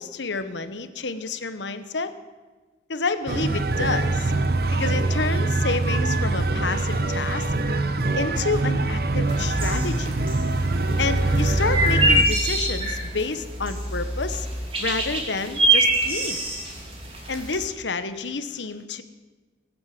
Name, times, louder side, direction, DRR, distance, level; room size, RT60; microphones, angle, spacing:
voice 1, 0.0-2.1 2.9-4.3 4.7-7.5 8.1-10.2 11.0-14.5 14.8-16.4 17.3-19.0, left 4 dB, 80° left, 11 dB, 1.1 m, -29 dB
sound 1, 3.3-12.2, right 2 dB, 55° right, 0.9 m, -24 dB
sound 2, 9.3-17.6, right 1 dB, 30° right, 2.8 m, -25 dB
22.0 x 8.0 x 7.7 m, 1.3 s
head